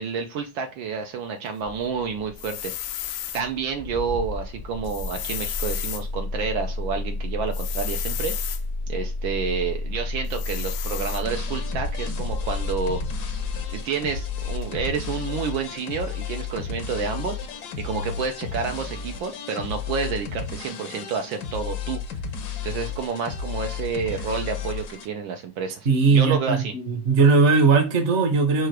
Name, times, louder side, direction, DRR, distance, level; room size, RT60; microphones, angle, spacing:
voice 1, 0.0-3.0 3.3-8.3 8.9-13.0 13.7-17.4 17.8-22.0 22.6-26.7, right 5 dB, 75° right, 1.3 m, -29 dB
Engine starting, 1.6-15.7, left 2 dB, 5° left, 0.7 m, -32 dB
sound 1, 2.4-3.4 4.8-6.0 7.5-8.6 10.3-11.2, left 11 dB, 80° left, 1.4 m, -33 dB
sound 2, 11.2-25.0, left 6 dB, 60° left, 1.1 m, -33 dB
voice 2, 25.8-28.7, right 4 dB, 40° right, 1.0 m, -19 dB
4.7 x 2.4 x 4.5 m
omnidirectional pair, 2.3 m